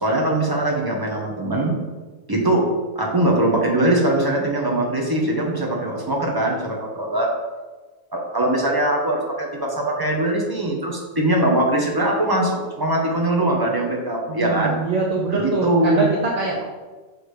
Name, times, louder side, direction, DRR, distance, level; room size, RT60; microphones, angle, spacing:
voice 1, 0.0-1.8 2.3-2.6 2.9-7.3 8.1-14.8 15.3-16.1, right 1 dB, 15° right, -1 dB, 1.0 m, -21 dB
voice 2, 14.3-16.6, right 4 dB, 40° right, -3 dB, 0.6 m, -23 dB
6.2 x 3.3 x 5.0 m, 1.3 s
omnidirectional pair, 1.5 m